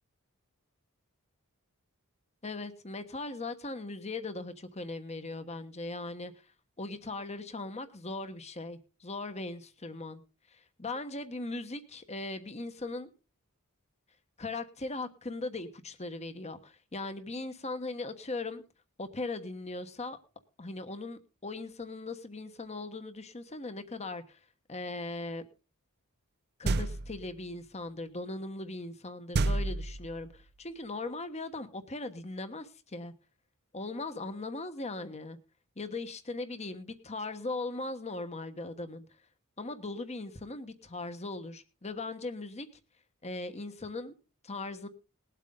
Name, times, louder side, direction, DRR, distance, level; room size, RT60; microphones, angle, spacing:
voice 1, 2.4-6.3 6.8-10.2 10.5-13.1 14.4-18.6 19.0-20.2 20.6-24.4 24.7-25.5 26.6-33.1 33.7-35.4 35.8-39.1 39.6-42.7 43.2-44.1 44.4-44.9, left 2 dB, 30° left, 10 dB, 1.3 m, -39 dB
sound 1, 26.6-27.3 29.3-30.4, right 2 dB, 45° right, 0.5 m, -30 dB
20.0 x 8.3 x 3.8 m, 0.31 s
head